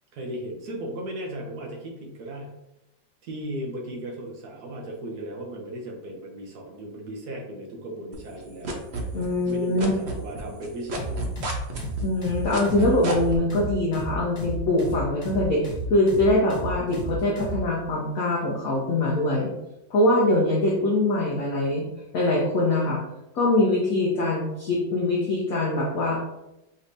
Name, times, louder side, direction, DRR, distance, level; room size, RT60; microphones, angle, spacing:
voice 1, 0.1-2.5 3.2-8.8 9.4-11.2 12.6-13.0, right 1 dB, 60° right, -1 dB, 1.1 m, -36 dB
sound 1, 8.1-9.5 9.8-13.4, right 2 dB, 90° right, 0.5 m, -31 dB
voice 2, 9.1-9.9 12.0-19.5 19.9-21.8 22.1-23.0 23.3-26.3, left 1 dB, 60° left, -4 dB, 1.0 m, -23 dB
sound 2, 10.9-17.6, equal, 25° left, 1.3 m, -32 dB
5.3 x 3.2 x 2.6 m, 0.90 s
omnidirectional pair, 2.2 m